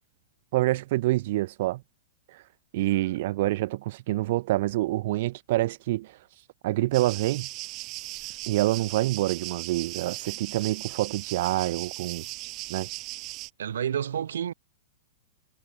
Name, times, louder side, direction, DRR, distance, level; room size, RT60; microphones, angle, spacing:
voice 1, 0.5-1.8 2.7-6.1 6.6-7.5 8.5-12.2 12.7-12.9, right 17 dB, 45° right, 0.4 m, -26 dB
voice 2, 2.9-3.2 13.6-14.5, right 9 dB, 90° right, 2.7 m, -30 dB
sound 1, 6.9-13.5, right 21 dB, 25° right, 2.0 m, -38 dB
supercardioid pair, 170°, 0 cm